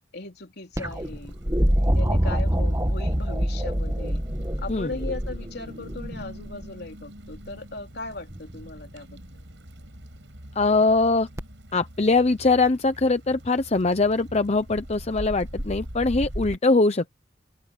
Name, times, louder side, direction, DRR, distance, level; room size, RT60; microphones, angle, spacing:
voice 1, 0.1-1.4 1.9-4.2 4.6-9.2, left 2 dB, 60° left, 3.7 m, -38 dB
sound 1, 0.8-6.7 8.3-8.8 11.4-11.5, equal, 20° right, 1.8 m, -25 dB
sound 2, 0.8-16.6, equal, 80° right, 5.7 m, -41 dB
voice 2, 10.6-11.3 11.7-17.1, left 3 dB, 35° left, 0.8 m, -22 dB
open air
head